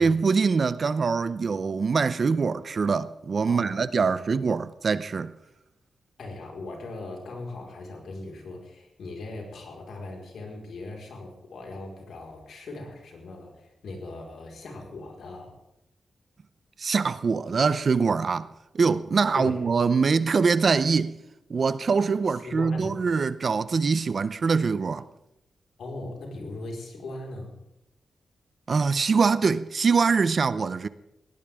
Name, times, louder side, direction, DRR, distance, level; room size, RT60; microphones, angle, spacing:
voice 1, 0.0-5.3 16.8-18.5 18.7-21.2 21.5-25.0 28.7-30.9, right 5 dB, 40° right, 0.6 m, -23 dB
voice 2, 3.5-3.8 4.1-4.2 6.2-15.6 19.3-19.6 22.2-23.0 25.8-27.6, left 2 dB, 75° left, 4.7 m, -39 dB
20.5 x 18.0 x 3.6 m
wide cardioid pair, 160°, 0 cm